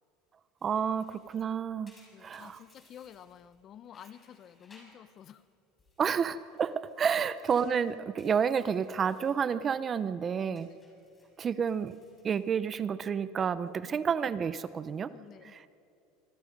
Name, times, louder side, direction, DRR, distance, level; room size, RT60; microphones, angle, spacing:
sound 1, 0.6-3.6 3.9-5.5 5.8-9.4 9.8-10.1 10.5-13.1 13.4-13.8 14.4-15.0, left 2 dB, 15° left, 6.2 m, -64 dB
voice 1, 0.6-1.9 2.2-2.6 6.0-10.7 11.4-12.0 12.2-15.1 15.4-15.7, right 7 dB, 25° right, 15 dB, 0.6 m, -30 dB
voice 2, 2.1-5.4 10.2-10.8 13.8-14.0 15.1-15.5, left 9 dB, 35° left, 15 dB, 0.7 m, -51 dB
26.0 x 24.5 x 5.3 m, 2.5 s
cardioid pair, 145°, 0 cm